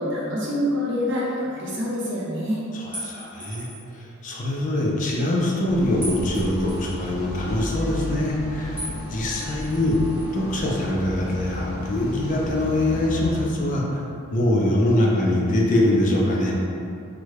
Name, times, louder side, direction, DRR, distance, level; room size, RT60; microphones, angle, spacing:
voice 1, 0.0-2.6, left 1 dB, 55° right, -6 dB, 0.8 m, -26 dB
voice 2, 2.7-3.7 3.9-10.0 10.3-16.6, left 1 dB, 35° left, -2 dB, 0.4 m, -23 dB
sound 1, 2.9-3.9 6.0-7.0 8.8-9.0 9.3-10.3, equal, 10° right, 0.7 m, -37 dB
sound 2, 5.7-13.5, equal, 55° left, 0.9 m, -33 dB
3.5 x 2.1 x 3.2 m, 2.6 s
head